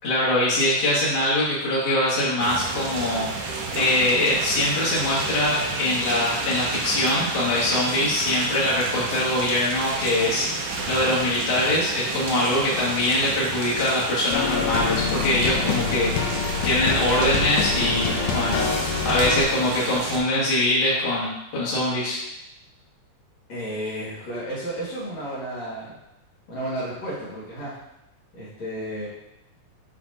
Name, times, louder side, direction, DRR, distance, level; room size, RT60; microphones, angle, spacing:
voice 1, 0.0-18.7 19.0-22.2, left 1 dB, 35° left, -8 dB, 2.4 m, -23 dB
sound 1, 2.4-20.2, right 3 dB, 85° right, 2.5 m, -31 dB
sound 2, 14.3-19.4, left 6 dB, 80° left, 2.3 m, -26 dB
voice 2, 15.6-16.0 23.5-25.9 26.5-27.7 28.3-29.1, right 1 dB, 60° left, -9 dB, 3.1 m, -32 dB
9.8 x 4.4 x 2.8 m, 0.87 s
omnidirectional pair, 3.6 m